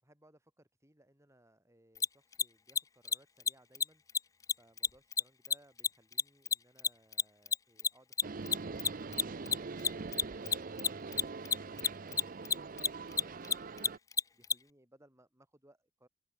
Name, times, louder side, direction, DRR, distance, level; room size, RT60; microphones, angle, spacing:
voice 1, 0.0-4.0 4.6-9.0 14.3-16.1, right 1 dB, 15° right, 7.9 m, -65 dB
Mechanisms, 2.0-2.1 2.3-2.4 2.7-2.8 3.1-3.2 3.4-3.5 3.8-3.9 4.1-4.2 4.5-7.2 7.5-14.5, left 6 dB, 15° left, 0.3 m, -29 dB
sound 1, 8.2-14.0, right 4 dB, 45° right, 0.6 m, -43 dB
open air
head